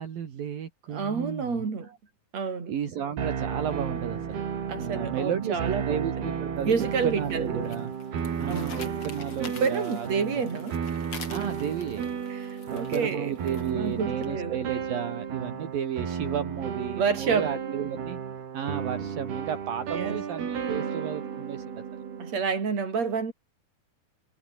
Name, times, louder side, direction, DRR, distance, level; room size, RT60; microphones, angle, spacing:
voice 1, 0.0-2.0 2.7-4.4 4.8-7.9 8.4-10.1 10.3-10.4 11.3-12.1 12.7-18.2 18.5-21.8, right 8 dB, 65° right, 4.3 m, -33 dB
voice 2, 0.9-1.9 2.3-2.7 4.7-6.3 6.6-7.7 8.5-8.8 9.5-10.8 12.3-13.4 13.7-14.6 17.0-17.5 19.9-20.2 22.2-23.3, right 5 dB, 40° right, 5.6 m, -29 dB
sound 1, 3.2-22.4, right 7 dB, 80° right, 5.8 m, -33 dB
sound 2, 6.6-13.9, left 5 dB, 35° left, 4.1 m, -46 dB
omnidirectional pair, 4.5 m